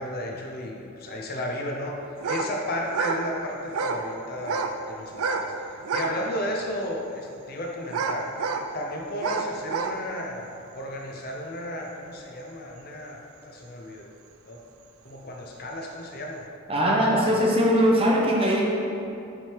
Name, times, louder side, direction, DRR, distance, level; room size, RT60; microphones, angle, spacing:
voice 1, 0.0-8.3 8.7-10.5 10.7-14.1 14.5-14.6 15.0-16.5 17.3-17.4, left 1 dB, 45° left, 0 dB, 0.6 m, -34 dB
sound 1, 2.2-2.5 2.8-3.2 3.7-4.0 4.4-4.8 5.1-5.5 5.8-6.2 6.7-6.8 7.9-8.7 9.2-10.0, right 4 dB, 65° right, 0.4 m, -28 dB
voice 2, 16.7-18.6, equal, 25° right, -2 dB, 0.7 m, -21 dB
5.9 x 3.4 x 4.6 m, 2.6 s
head